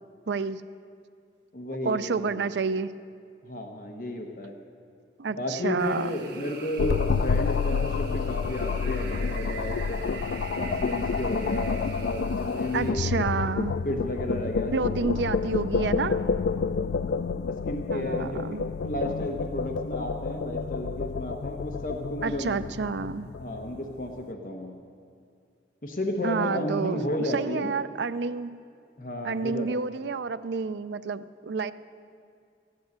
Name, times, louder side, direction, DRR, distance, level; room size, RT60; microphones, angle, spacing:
voice 1, 0.3-0.6 1.8-2.9 5.2-6.1 12.7-13.8 14.7-16.2 17.9-18.6 22.2-23.3 26.2-27.0 27.3-28.6 29.2-31.7, right 4 dB, 85° right, 13 dB, 0.5 m, -29 dB
voice 2, 1.5-2.4 3.4-4.5 5.4-10.0 10.6-13.0 13.8-15.0 15.8-16.7 17.7-18.4 18.8-22.6 23.4-24.7 25.8-27.7 29.0-29.7, left 1 dB, 50° left, 3 dB, 1.1 m, -33 dB
sound 1, 5.8-12.9, right 5 dB, 65° right, 1.9 m, -44 dB
sound 2, 6.8-24.0, left 5 dB, 75° left, 0.4 m, -29 dB
14.5 x 10.0 x 8.0 m, 2.3 s
head